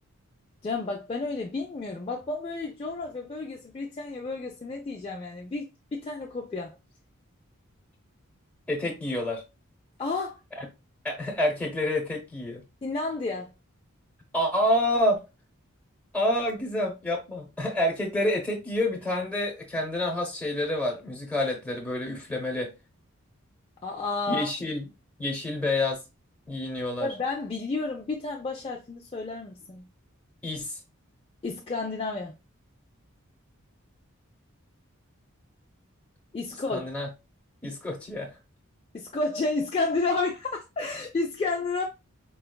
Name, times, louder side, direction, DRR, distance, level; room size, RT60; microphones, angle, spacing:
voice 1, 0.6-6.8 10.0-10.4 12.8-13.5 23.8-24.5 27.0-29.9 31.4-32.3 36.3-36.9 38.9-41.8, left 3 dB, 25° left, 0.3 m, -31 dB
voice 2, 8.7-9.4 10.6-10.7 11.0-12.6 14.3-15.2 16.1-22.7 24.3-24.8 25.2-26.0 26.5-27.1 30.4-30.8 36.7-37.1 37.6-38.3, left 1 dB, 5° left, 0.8 m, -28 dB
4.4 x 2.3 x 2.2 m
head